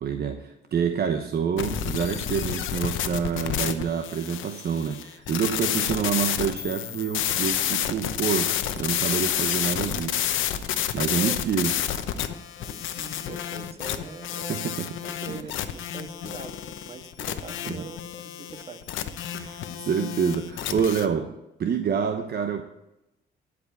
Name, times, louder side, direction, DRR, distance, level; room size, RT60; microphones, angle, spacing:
voice 1, 0.0-10.6 10.9-11.8 14.5-15.4 17.7-17.8 19.3-21.3 21.6-22.6, right 7 dB, 55° right, 7 dB, 0.9 m, -27 dB
sound 1, 1.6-21.1, left 10 dB, 80° left, 0.9 m, -30 dB
voice 2, 11.1-11.5 12.6-14.8 15.0-18.8, right 3 dB, 30° right, 6 dB, 1.7 m, -42 dB
12.0 x 5.1 x 8.2 m, 0.91 s
cardioid pair, 90°, 20 cm